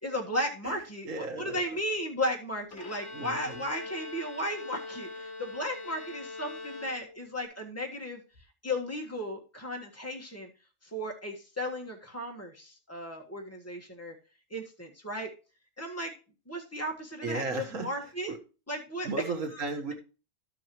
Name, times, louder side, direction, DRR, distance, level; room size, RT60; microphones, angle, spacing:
voice 1, 0.0-8.2 8.6-10.5 10.8-14.1 14.5-15.3 15.8-16.1 16.5-18.3 18.7-19.1 19.5-19.6, left 1 dB, 10° left, 1 dB, 1.6 m, -35 dB
voice 2, 1.1-1.6 3.1-3.6 17.2-17.9 18.3-18.4 19.0-19.9, right 3 dB, 75° right, 3 dB, 1.9 m, -35 dB
Bowed string instrument, 2.7-7.4, left 3 dB, 65° left, 2.0 m, -42 dB
12.0 x 7.0 x 3.1 m, 0.33 s
omnidirectional pair, 1.4 m